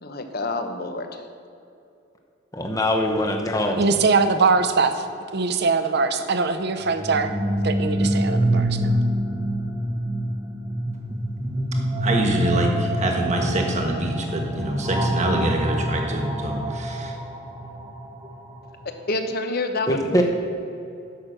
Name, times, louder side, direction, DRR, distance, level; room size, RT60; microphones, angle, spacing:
voice 1, 0.0-1.2 19.1-20.2, left 2 dB, 50° left, 6 dB, 0.8 m, -27 dB
voice 2, 2.5-3.8 20.1-20.2, left 1 dB, 15° left, 2 dB, 0.8 m, -22 dB
voice 3, 3.8-5.0 5.3-7.3 7.6-9.0, right 4 dB, 55° right, 9 dB, 0.7 m, -22 dB
sound 1, 6.8-18.7, right 1 dB, 20° right, 0.8 m, -26 dB
voice 4, 12.0-17.1, right 1 dB, 35° right, 2 dB, 1.3 m, -25 dB
10.5 x 6.1 x 6.6 m, 2.6 s
head